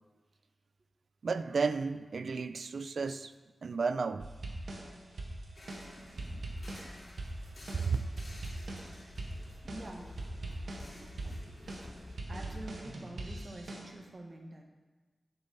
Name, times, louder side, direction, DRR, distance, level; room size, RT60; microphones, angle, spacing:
voice 1, 1.2-3.3 3.6-4.3 5.8-6.4 7.7-8.1 11.0-11.4, right 4 dB, 70° right, 12 dB, 0.4 m, -34 dB
sound 1, 4.2-13.8, right 1 dB, 90° right, 1.4 m, -42 dB
sound 2, 5.6-12.2, left 1 dB, 60° left, 2.9 m, -51 dB
voice 2, 9.6-10.2 12.3-14.6, right 2 dB, 45° right, 2 dB, 1.3 m, -46 dB
8.1 x 6.9 x 5.5 m, 1.3 s
wide cardioid pair, 90°, 0 cm